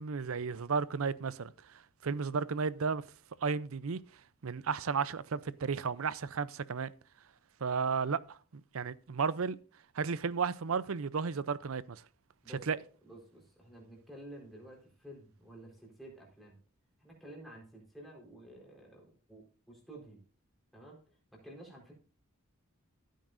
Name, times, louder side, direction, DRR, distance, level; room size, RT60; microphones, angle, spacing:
voice 1, 0.0-3.0 3.4-4.0 4.4-6.9 7.6-9.6 9.9-12.0 12.7-12.8, right 5 dB, 80° right, 0.6 m, -33 dB
voice 2, 12.4-16.6 17.0-20.2 20.7-21.9, right 1 dB, ahead, 4.3 m, -52 dB
15.0 x 9.2 x 2.6 m
head